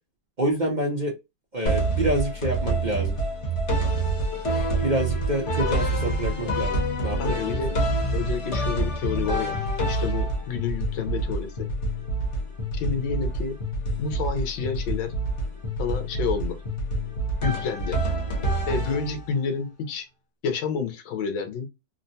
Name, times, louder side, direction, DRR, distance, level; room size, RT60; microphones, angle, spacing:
voice 1, 0.4-1.1 1.5-3.2 4.8-7.8, right 1 dB, 45° right, 0.5 m, -27 dB
sound 1, 1.7-19.5, right 1 dB, 45° left, 1.1 m, -27 dB
voice 2, 7.2-7.7 8.1-9.6 9.9-11.7 12.7-13.6 14.0-15.1 15.8-16.6 17.4-18.0 18.7-20.1 20.4-21.7, left 6 dB, 90° left, 1.6 m, -29 dB
3.6 x 2.2 x 2.6 m
omnidirectional pair, 2.1 m